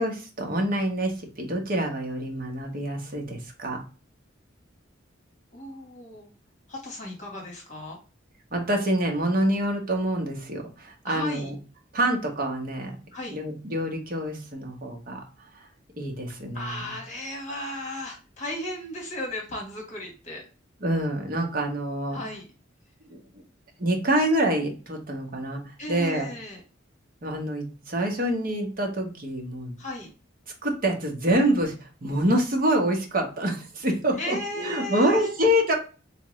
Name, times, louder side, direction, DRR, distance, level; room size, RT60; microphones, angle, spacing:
voice 1, 0.0-3.8 8.5-11.5 11.9-12.9 13.3-15.2 15.5-15.7 16.0-16.9 20.8-22.2 23.1-23.4 23.8-26.3 27.2-29.7 30.6-35.8, right 1 dB, 50° right, 2 dB, 1.2 m, -26 dB
voice 2, 5.5-6.3 6.7-8.0 11.0-11.5 13.1-13.4 16.5-20.4 22.1-22.5 25.8-26.6 29.8-30.1 34.1-35.3, left 1 dB, 40° left, 0 dB, 1.5 m, -35 dB
3.6 x 3.5 x 3.1 m, 0.33 s
head